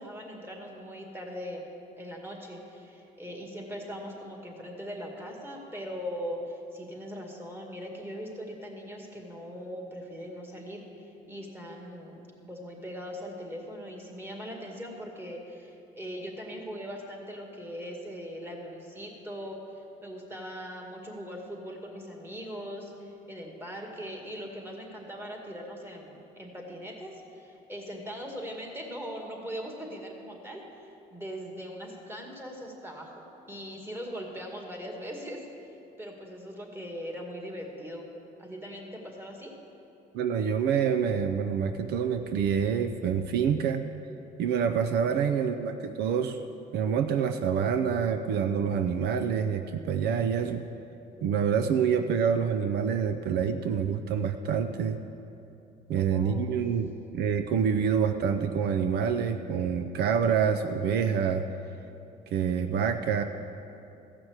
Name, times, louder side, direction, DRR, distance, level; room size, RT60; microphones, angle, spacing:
voice 1, 0.0-1.6 2.0-30.6 31.1-35.4 36.0-38.1 38.4-39.5 56.0-56.5, equal, 15° right, 1 dB, 2.1 m, -40 dB
voice 2, 40.1-43.8 44.4-46.4 46.7-50.6 51.2-55.0 55.9-61.4 62.3-63.2, right 7 dB, 75° right, 8 dB, 0.6 m, -27 dB
14.5 x 5.9 x 8.0 m, 2.8 s
cardioid pair, 110°, 17 cm